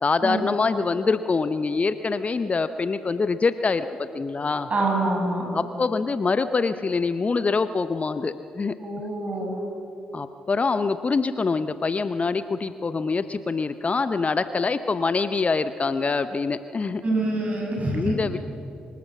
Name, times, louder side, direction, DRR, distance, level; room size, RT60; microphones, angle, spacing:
voice 1, 0.0-4.7 5.5-8.8 10.1-17.0 17.9-18.4, left 4 dB, 35° left, 12 dB, 0.7 m, -25 dB
voice 2, 4.7-5.5 8.8-9.6 17.0-18.2, right 2 dB, 35° right, 0 dB, 6.6 m, -25 dB
25.5 x 14.5 x 7.3 m, 2.7 s
figure-of-eight pair, 40°, 4 cm